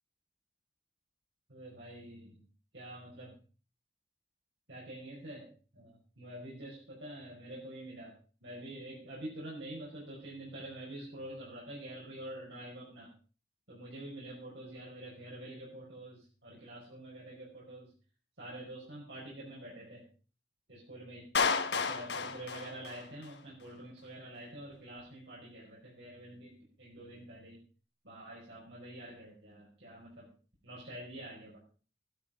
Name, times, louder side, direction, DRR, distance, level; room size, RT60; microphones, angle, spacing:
voice 1, 1.5-2.4 2.7-3.4 4.7-8.1 8.4-13.1 13.7-17.9 18.4-20.1 20.7-21.3 21.7-27.6 28.0-30.3 30.6-31.6, right 1 dB, 90° right, -5 dB, 5.6 m, -47 dB
Clapping, 21.3-23.4, left 5 dB, 75° left, 1.4 m, -32 dB
14.0 x 12.5 x 5.2 m, 0.38 s
head